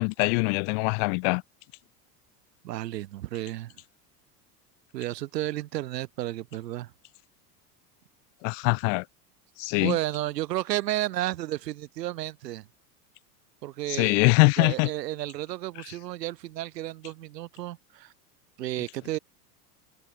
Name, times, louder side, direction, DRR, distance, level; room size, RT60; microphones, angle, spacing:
voice 1, 0.0-1.4 8.4-9.0 9.6-10.0 13.9-14.9, left 40 dB or more, 55° left, 0.7 m, -23 dB
voice 2, 2.6-3.7 4.9-6.9 9.7-12.7 13.6-14.3 14.6-18.1 18.6-19.2, right 15 dB, 80° right, 2.2 m, -32 dB
hypercardioid pair, 95°, 48 cm